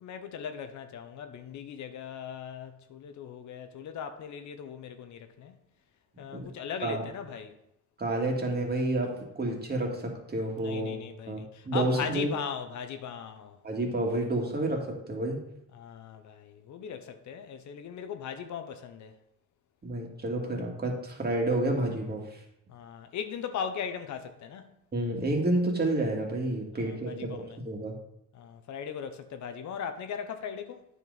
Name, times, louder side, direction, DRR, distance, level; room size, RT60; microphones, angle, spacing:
voice 1, 0.0-5.5 6.2-7.5 10.6-13.6 15.7-19.2 22.7-24.6 26.7-27.6 28.3-30.9, left 7 dB, 70° left, 0.9 m, -38 dB
voice 2, 8.0-10.9 11.3-12.3 13.6-15.4 19.8-22.2 24.9-27.9, right 2 dB, 30° right, 2.1 m, -30 dB
9.3 x 5.3 x 4.0 m
cardioid pair, 90°, 30 cm